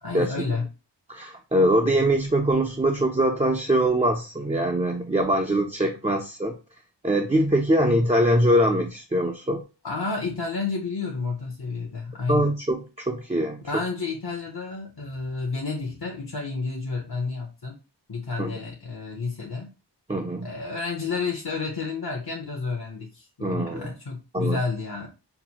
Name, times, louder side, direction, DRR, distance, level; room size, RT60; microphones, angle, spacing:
voice 1, 0.0-0.7 9.8-12.5 13.6-17.8 18.1-19.7 20.4-25.1, left 4 dB, 60° left, 0 dB, 0.9 m, -30 dB
voice 2, 1.1-6.5 7.0-9.6 12.3-13.6 18.4-18.6 20.1-20.5 23.4-23.9 24.3-24.6, right 1 dB, 15° right, 1 dB, 0.5 m, -23 dB
5.7 x 2.1 x 2.8 m, 0.31 s
wide cardioid pair, 40°, 42 cm